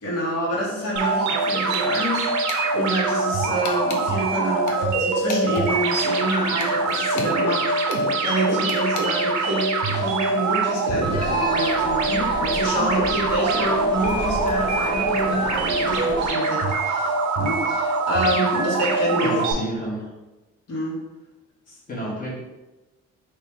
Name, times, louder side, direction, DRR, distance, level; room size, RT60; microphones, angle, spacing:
voice 1, 0.0-19.4 20.7-21.0 21.7-21.8, right 1 dB, 55° left, -5 dB, 1.4 m, -27 dB
sound 1, 1.0-19.5, right 3 dB, 70° right, 0.6 m, -24 dB
sound 2, 1.7-2.1 2.5-2.6 3.6-4.0 4.7-5.7 6.6-7.4 7.9-8.0 8.7-9.1, left 4 dB, 75° left, 0.7 m, -35 dB
sound 3, 11.0-16.3, right 1 dB, 15° right, 0.6 m, -30 dB
voice 2, 19.2-20.1 21.9-22.3, equal, 30° left, -6 dB, 1.2 m, -30 dB
3.0 x 2.7 x 3.6 m, 1.1 s
cardioid pair, 90°, 30 cm